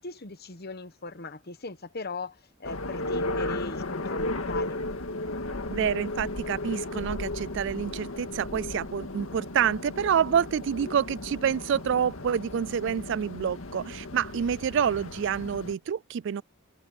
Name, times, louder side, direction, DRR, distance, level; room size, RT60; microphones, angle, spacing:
voice 1, 0.0-4.8, left 3 dB, 50° left, 1.2 m, -39 dB
sound 1, 2.6-15.7, left 2 dB, 85° left, 1.9 m, -35 dB
voice 2, 5.7-16.4, right 8 dB, 60° right, 0.3 m, -28 dB
head